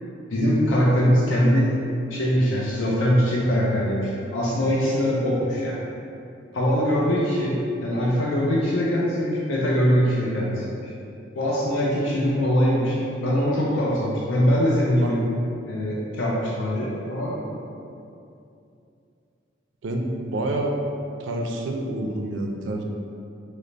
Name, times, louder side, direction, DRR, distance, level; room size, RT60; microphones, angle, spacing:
voice 1, 0.3-1.8 2.1-5.8 6.5-10.9 11.3-15.2 15.7-17.4, equal, 80° left, -5 dB, 0.5 m, -22 dB
voice 2, 19.8-20.8 21.2-22.8, right 1 dB, 75° right, 2 dB, 0.4 m, -28 dB
3.2 x 2.0 x 3.8 m, 2.6 s
head